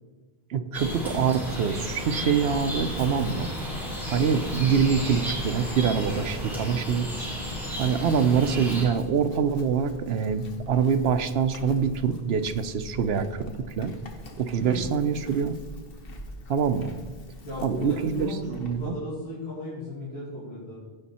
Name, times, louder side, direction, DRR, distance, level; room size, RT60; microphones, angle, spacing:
voice 1, 0.5-3.5 4.1-7.1 7.8-13.9 14.4-15.6 16.5-16.9 17.6-18.9, right 6 dB, 80° right, 10 dB, 0.9 m, -25 dB
sound 1, 0.7-8.9, equal, ahead, 3.1 m, -33 dB
Chewing mastication / Livestock farm animals working animals, 2.3-18.9, left 1 dB, 65° left, 1.4 m, -43 dB
voice 2, 17.4-20.8, left 2 dB, 85° left, -8 dB, 2.8 m, -36 dB
15.5 x 5.3 x 4.2 m, 1.4 s
omnidirectional pair, 1.0 m